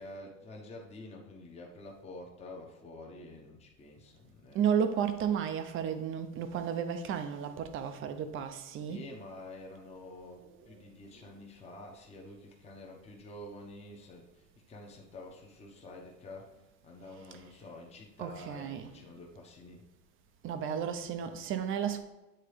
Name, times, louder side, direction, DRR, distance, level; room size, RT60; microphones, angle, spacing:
voice 1, 0.0-4.7 8.9-19.8, left 1 dB, 15° left, 0.9 m, -48 dB
voice 2, 4.5-9.0 10.7-10.8 18.2-18.9 20.4-22.0, right 8 dB, 35° right, 0.6 m, -33 dB
8.8 x 3.7 x 3.3 m
supercardioid pair, 135°, 39 cm